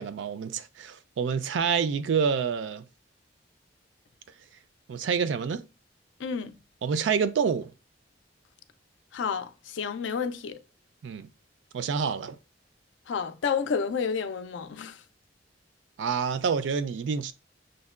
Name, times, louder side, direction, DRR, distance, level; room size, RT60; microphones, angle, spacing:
voice 1, 0.0-2.8 4.9-5.6 6.8-7.7 11.0-11.3 11.7-12.4 16.0-17.3, right 6 dB, 80° right, 0.3 m, -27 dB
voice 2, 6.2-6.6 9.1-10.6 13.1-15.0, left 6 dB, 85° left, 0.4 m, -30 dB
6.3 x 2.1 x 2.3 m
head